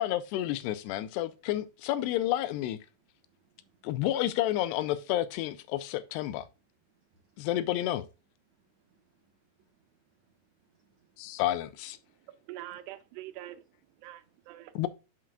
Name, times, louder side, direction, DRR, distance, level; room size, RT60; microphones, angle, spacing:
voice 1, 0.0-2.8 3.8-6.5 7.4-8.1 11.2-12.0 14.8-14.9, left 13 dB, 90° left, 2.7 m, -30 dB
voice 2, 3.2-4.0 6.9-7.5 8.5-11.4 14.2-14.3, right 6 dB, 70° right, 1.7 m, -71 dB
voice 3, 12.0-13.7 14.0-14.7, right 14 dB, 85° right, 2.8 m, -45 dB
7.7 x 7.5 x 2.2 m
omnidirectional pair, 4.7 m